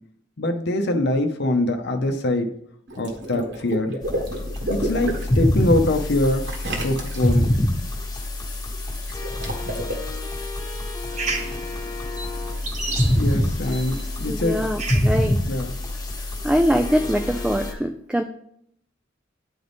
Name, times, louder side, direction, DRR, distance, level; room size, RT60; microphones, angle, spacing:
voice 1, 0.4-2.5 3.0-4.0 4.7-6.4 6.8-7.5 13.1-14.6 15.5-15.7, left 1 dB, 60° left, 5 dB, 0.7 m, -23 dB
Water / Liquid, 2.9-5.4 6.4-7.5 9.0-9.9, right 1 dB, 60° right, 1.3 m, -30 dB
sound 1, 4.0-17.7, left 1 dB, 20° left, 1.2 m, -26 dB
sound 2, 11.1-15.3, right 3 dB, 40° right, 1.0 m, -33 dB
voice 2, 14.3-15.4 16.4-18.2, equal, 5° right, 5 dB, 0.3 m, -23 dB
10.0 x 4.0 x 3.4 m, 0.68 s
head